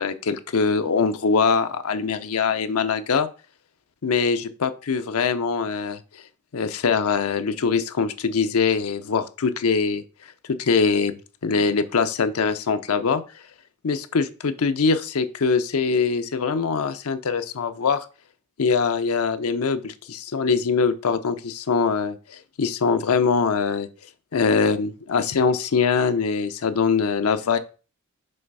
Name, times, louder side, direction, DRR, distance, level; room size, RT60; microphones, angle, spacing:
voice 1, 0.0-3.3 4.0-6.0 6.5-10.0 10.5-11.1 11.4-13.2 13.8-18.1 18.6-23.9 24.3-27.6, left 5 dB, 80° left, 10 dB, 0.6 m, -23 dB
5.6 x 3.4 x 5.3 m, 0.36 s
head